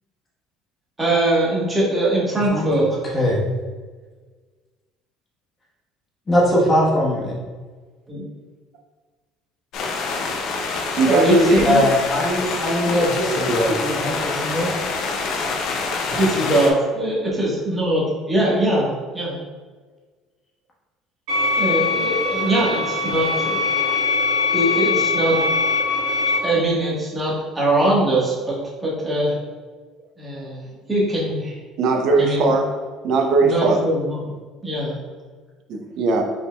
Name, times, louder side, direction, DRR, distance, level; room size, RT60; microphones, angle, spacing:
voice 1, 1.0-2.9 8.1-8.2 11.1-11.9 12.8-13.0 16.2-19.4 21.6-23.7 24.5-25.4 26.4-29.3 30.2-30.6 30.9-31.6 32.2-32.4 33.4-34.2 34.6-35.0, right 1 dB, 15° right, -6 dB, 1.3 m, -21 dB
voice 2, 6.3-7.4 11.6-14.7 16.1-16.2, equal, 20° left, -4 dB, 1.1 m, -20 dB
sound 1, 9.7-16.7, left 4 dB, 55° left, 0.5 m, -26 dB
voice 3, 11.0-11.6 13.3-13.8 31.8-32.7 33.0-33.8 35.7-36.2, right 3 dB, 55° right, 2 dB, 0.6 m, -19 dB
sound 2, 21.3-26.4, left 4 dB, 80° right, 1.4 m, -22 dB
5.4 x 3.5 x 2.2 m, 1.4 s
cardioid pair, 155°, 0 cm